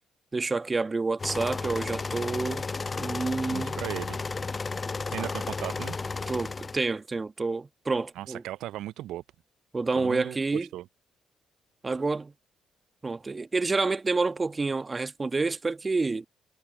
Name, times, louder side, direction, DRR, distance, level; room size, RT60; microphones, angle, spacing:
voice 1, 0.3-2.7 3.0-3.8 5.2-5.3 6.3-8.4 9.7-10.7 11.8-12.3 13.0-16.3, right 3 dB, 30° right, 1.8 m, -28 dB
sound 1, 1.2-6.8, left 4 dB, 30° left, 0.4 m, -33 dB
voice 2, 3.5-4.2 5.1-6.0 8.2-9.2 9.9-10.8, right 14 dB, 65° right, 0.5 m, -37 dB
figure-of-eight pair, 45°, 0 cm